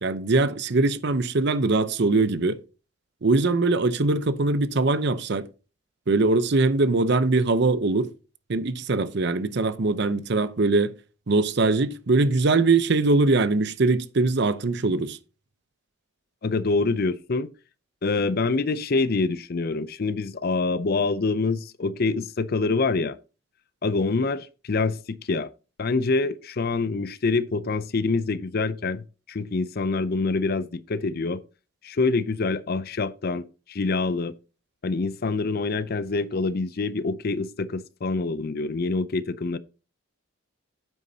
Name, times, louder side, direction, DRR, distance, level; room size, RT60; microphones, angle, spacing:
voice 1, 0.0-2.6 3.2-5.5 6.1-8.1 8.5-10.9 11.3-15.2, right 3 dB, 55° right, 0.7 m, -22 dB
voice 2, 16.4-17.5 18.0-23.2 23.8-25.5 25.8-31.4 31.8-34.3 34.8-39.6, left 3 dB, 45° left, 0.5 m, -26 dB
9.2 x 8.4 x 2.8 m
head